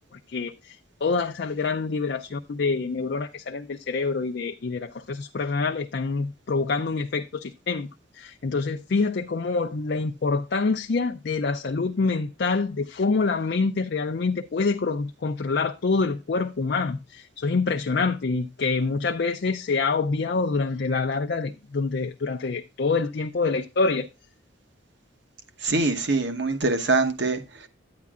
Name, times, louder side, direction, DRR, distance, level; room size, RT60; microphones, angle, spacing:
voice 1, 0.3-0.8 1.0-7.9 8.1-24.1, left 4 dB, 55° left, 0.4 m, -26 dB
voice 2, 25.6-27.7, right 3 dB, 60° right, 1.0 m, -24 dB
9.5 x 9.4 x 2.4 m
head